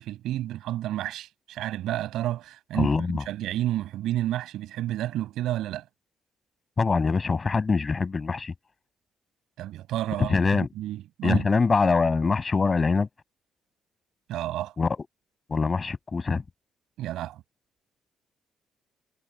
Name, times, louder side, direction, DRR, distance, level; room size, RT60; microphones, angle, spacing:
voice 1, 0.0-5.8 9.6-11.4 14.3-14.7 17.0-17.4, right 13 dB, 85° right, 7.5 m, -31 dB
voice 2, 2.7-3.2 6.8-8.5 10.2-10.7 11.2-13.1 14.8-15.0 15.5-16.4, left 4 dB, 30° left, 6.5 m, -23 dB
cardioid pair, 90°, 0 cm